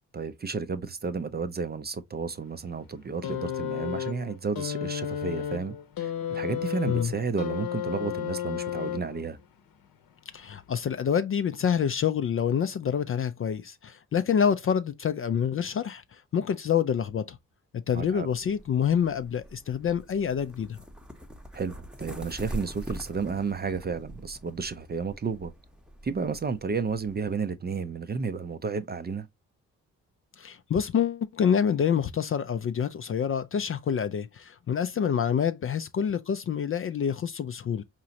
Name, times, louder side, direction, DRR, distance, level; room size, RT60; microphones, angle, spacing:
voice 1, 0.1-9.4 17.9-18.3 21.5-25.5 26.0-29.3, right 5 dB, 25° right, 0.5 m, -32 dB
sound 1, 3.2-9.4 10.4-10.6, left 10 dB, 55° left, 0.9 m, -33 dB
voice 2, 10.3-16.0 16.3-17.4 17.7-20.8 30.4-37.8, left 8 dB, 35° left, 0.4 m, -27 dB
Ponys - galoppierend, 17.9-27.3, equal, ahead, 0.8 m, -44 dB
4.8 x 2.9 x 2.7 m
hypercardioid pair, 40°, 42 cm